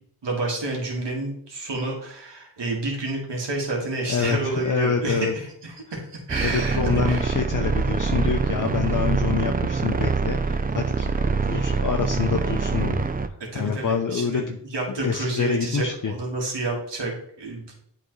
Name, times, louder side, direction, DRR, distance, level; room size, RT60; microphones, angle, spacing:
voice 1, 0.2-7.3 13.5-17.7, right 2 dB, 75° right, -1 dB, 1.9 m, -29 dB
voice 2, 4.1-5.3 6.4-11.1 11.5-13.0 13.5-14.6 15.0-16.1, left 6 dB, 45° left, 3 dB, 0.6 m, -26 dB
sound 1, 6.3-13.3, right 4 dB, 20° right, 0.4 m, -24 dB
8.6 x 3.8 x 3.1 m, 0.72 s
cardioid pair, 45°, 43 cm